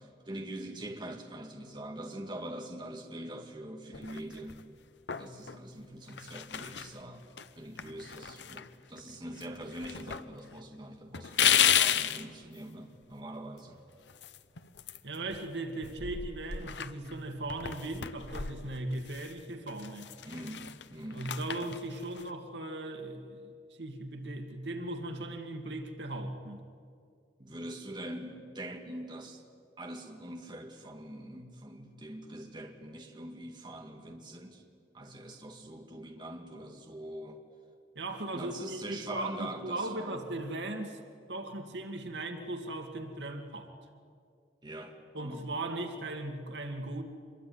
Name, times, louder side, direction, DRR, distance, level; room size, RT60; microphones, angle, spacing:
voice 1, 0.0-4.6 5.2-7.3 7.6-13.8 20.2-21.3 27.4-29.4 29.8-34.6 34.9-37.4 38.3-40.2 44.6-45.5, right 1 dB, 25° right, 3 dB, 2.0 m, -43 dB
sound 1, 3.9-4.6 5.1-5.6 6.1-6.9 7.4-7.5 7.8-9.1 9.4-10.2 10.5-10.6 11.1-12.2 14.1-15.5 15.8-19.3 19.7-22.3, left 9 dB, 85° left, 0.9 m, -33 dB
voice 2, 15.0-20.1 21.1-23.5 23.8-26.6 38.0-41.0 41.3-43.7 45.1-47.0, right 2 dB, 85° right, 5 dB, 2.3 m, -38 dB
25.0 x 22.5 x 9.6 m, 2.3 s
head